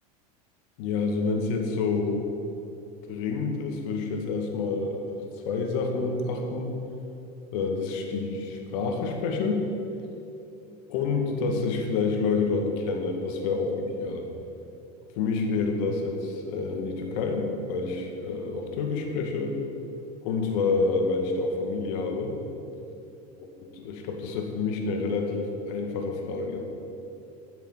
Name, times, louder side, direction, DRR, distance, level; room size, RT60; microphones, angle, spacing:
voice 1, 0.8-2.3 3.1-5.0 5.5-6.7 7.5-9.7 10.9-14.3 15.1-19.6 20.2-22.4 23.8-26.6, left 4 dB, 65° left, 2 dB, 2.1 m, -28 dB
11.0 x 7.5 x 7.4 m, 2.8 s
supercardioid pair, 110°, 20 cm